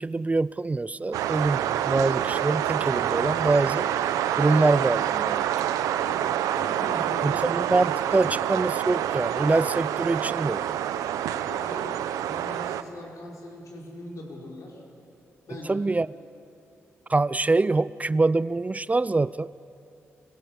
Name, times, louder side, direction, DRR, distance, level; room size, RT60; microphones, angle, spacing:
voice 1, 0.0-3.9 4.4-5.5 7.2-10.6 15.7-16.1 17.1-19.5, right 3 dB, 25° right, 19 dB, 0.4 m, -24 dB
sound 1, 1.1-12.8, right 11 dB, 85° right, 0.6 m, -27 dB
voice 2, 6.0-7.6 8.1-8.5 11.2-14.8 15.5-16.0, left 1 dB, 65° left, -2 dB, 4.8 m, -41 dB
24.5 x 17.5 x 7.1 m, 2.7 s
hypercardioid pair, 45°, 6 cm